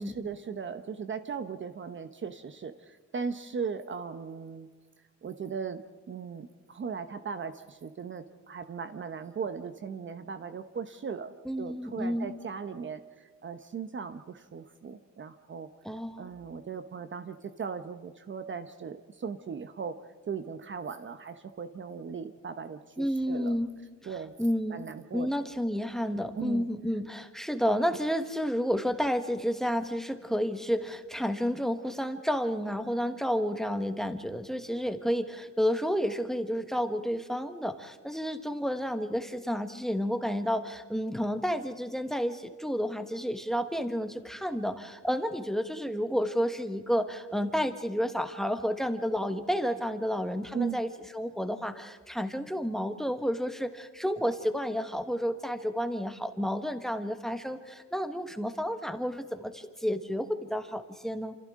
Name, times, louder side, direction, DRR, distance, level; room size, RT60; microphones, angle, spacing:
voice 1, 0.1-4.7 5.2-5.8 6.1-15.7 16.2-19.9 20.3-23.6 24.0-24.3 24.7-25.5 26.3-26.7 50.5-50.8, right 6 dB, 35° right, 9 dB, 0.9 m, -38 dB
voice 2, 11.4-12.3 15.8-16.3 23.0-23.7 24.0-24.1 24.4-61.4, equal, ahead, 8 dB, 1.3 m, -31 dB
28.5 x 27.5 x 3.7 m, 1.4 s
cardioid pair, 120°, 32 cm